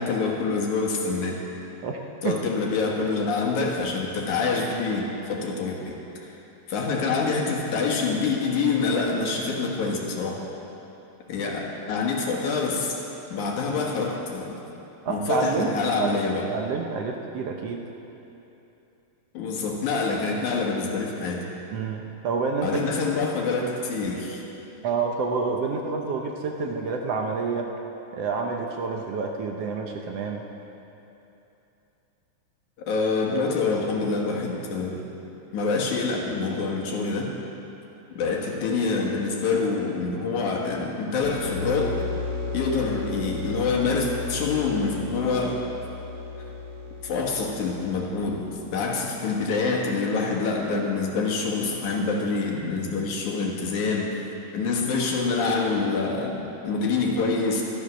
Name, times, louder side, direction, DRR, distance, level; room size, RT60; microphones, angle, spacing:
voice 1, 0.0-1.4 2.2-6.3 6.7-10.4 11.3-11.6 11.9-13.0 13.3-14.6 15.1-16.5 19.3-21.5 22.6-24.4 32.8-35.0 35.5-37.3 38.1-42.0 42.5-45.7 47.0-48.5 48.7-54.3 54.5-57.6, left 4 dB, 80° left, -1 dB, 3.0 m, -26 dB
voice 2, 15.0-15.7 16.0-16.2 16.5-17.8 21.7-22.8 24.8-27.7 28.1-30.4, right 4 dB, 65° right, 2 dB, 1.8 m, -28 dB
sound 1, 41.2-48.7, left 3 dB, 55° left, 0.9 m, -34 dB
13.0 x 12.0 x 6.2 m, 3.0 s
omnidirectional pair, 3.3 m